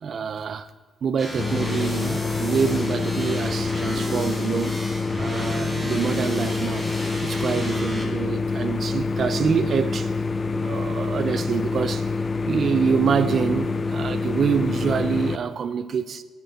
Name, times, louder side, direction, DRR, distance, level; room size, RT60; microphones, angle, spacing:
voice 1, 0.0-0.7 1.0-4.8 5.2-6.9 7.2-10.1 10.5-12.1 12.5-16.2, right 6 dB, 55° right, 0.6 m, -26 dB
sound 1, 1.2-8.0, equal, 10° right, 4.3 m, -34 dB
sound 2, 1.4-15.4, left 4 dB, 40° left, 0.6 m, -26 dB
sound 3, 3.2-6.8, left 2 dB, 75° left, 2.2 m, -44 dB
12.5 x 10.5 x 4.2 m
hypercardioid pair, 50°, 0 cm